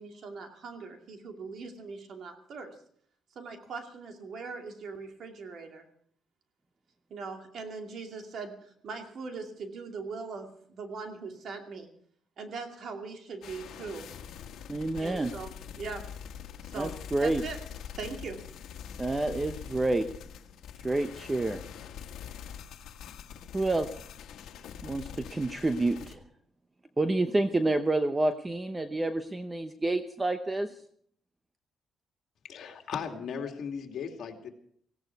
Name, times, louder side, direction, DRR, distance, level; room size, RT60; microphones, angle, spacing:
voice 1, 0.0-2.8 3.4-5.9 7.1-11.9 12.4-14.1 15.0-16.1 16.6-17.6 18.0-18.4, right 4 dB, 55° right, 4 dB, 2.4 m, -40 dB
sound 1, 13.4-26.2, left 8 dB, 80° left, 1.5 m, -44 dB
voice 2, 14.7-15.3 16.8-17.4 19.0-20.1 20.8-21.6 23.5-23.9 24.8-26.2 27.0-30.7, right 2 dB, 15° right, 8 dB, 0.8 m, -28 dB
voice 3, 32.4-34.5, left 7 dB, 60° left, 3 dB, 2.6 m, -37 dB
18.0 x 16.5 x 4.7 m, 0.63 s
cardioid pair, 140°, 0 cm